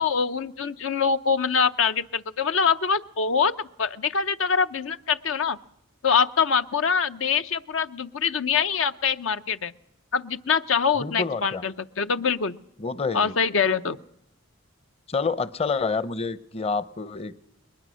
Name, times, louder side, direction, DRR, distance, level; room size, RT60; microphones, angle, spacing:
voice 1, 0.0-5.6 6.0-9.7 10.1-12.6 13.1-14.0, left 6 dB, 80° left, 10 dB, 0.7 m, -24 dB
voice 2, 11.0-11.6 12.8-13.3 15.1-17.3, left 4 dB, 30° left, 15 dB, 0.7 m, -28 dB
21.5 x 20.5 x 6.3 m, 0.78 s
head